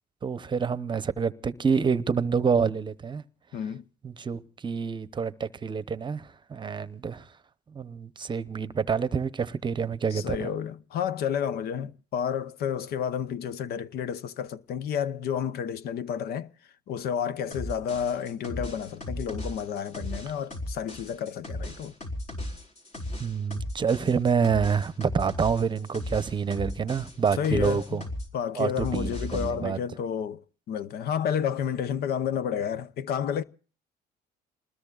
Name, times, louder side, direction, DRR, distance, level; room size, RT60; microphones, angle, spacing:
voice 1, 0.2-3.2 4.0-7.2 7.7-10.5 23.2-28.0 28.6-29.8, right 6 dB, 25° right, 0.8 m, -27 dB
voice 2, 3.5-3.8 10.1-16.5 16.9-21.9 27.4-28.0 28.3-30.4 30.7-33.4, left 8 dB, 70° left, 0.8 m, -30 dB
sound 1, 17.5-28.3 28.6-29.5, left 1 dB, 45° left, 4.7 m, -36 dB
28.5 x 20.5 x 2.4 m
cardioid pair, 110°, 17 cm